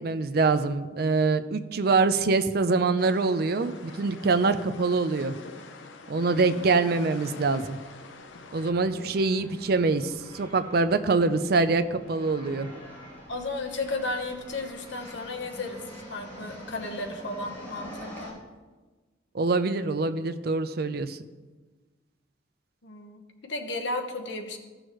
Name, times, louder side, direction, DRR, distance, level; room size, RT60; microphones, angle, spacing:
voice 1, 0.0-5.4 6.1-7.8 8.5-12.7 19.3-21.2, right 3 dB, 55° right, 11 dB, 0.5 m, -24 dB
sound 1, 3.0-8.7, left 3 dB, 85° left, 0.7 m, -45 dB
voice 2, 6.1-6.7 8.9-9.1 13.3-15.8 16.1-18.4 22.8-24.6, left 2 dB, 70° left, 3 dB, 1.1 m, -34 dB
sound 2, 8.2-18.3, equal, 10° left, 2.9 m, -45 dB
15.0 x 6.3 x 3.1 m, 1.3 s
head